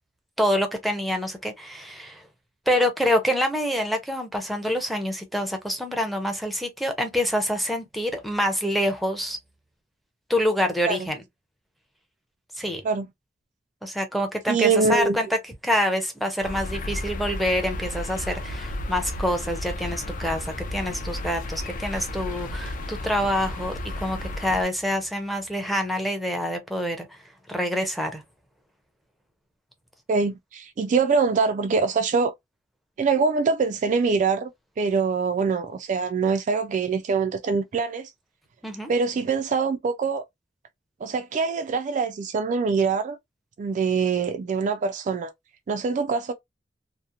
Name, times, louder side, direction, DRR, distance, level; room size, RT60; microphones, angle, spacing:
voice 1, 0.4-2.2 2.7-9.4 10.3-11.2 12.6-12.8 13.8-27.1 27.5-28.2 38.6-38.9, equal, ahead, 0.6 m, -26 dB
voice 2, 14.5-15.2 30.1-32.3 33.0-34.5 34.8-38.1 38.9-40.2 41.0-43.2 43.6-45.3 45.7-46.3, right 5 dB, 45° right, 0.3 m, -24 dB
sound 1, 16.4-24.6, left 1 dB, 45° left, 0.4 m, -33 dB
2.8 x 2.0 x 2.4 m
head